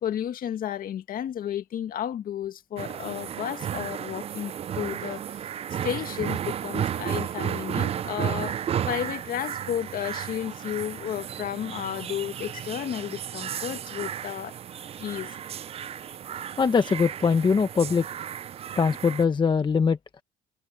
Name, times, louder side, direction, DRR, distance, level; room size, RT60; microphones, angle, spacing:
voice 1, 0.0-15.3, left 10 dB, 55° left, 1.8 m, -33 dB
sound 1, 2.8-19.3, right 9 dB, 35° right, 0.4 m, -33 dB
sound 2, 5.1-9.8, right 16 dB, 80° right, 6.4 m, -51 dB
voice 2, 16.6-18.1 18.7-20.2, left 5 dB, 25° left, 1.1 m, -22 dB
cardioid pair, 110°, 17 cm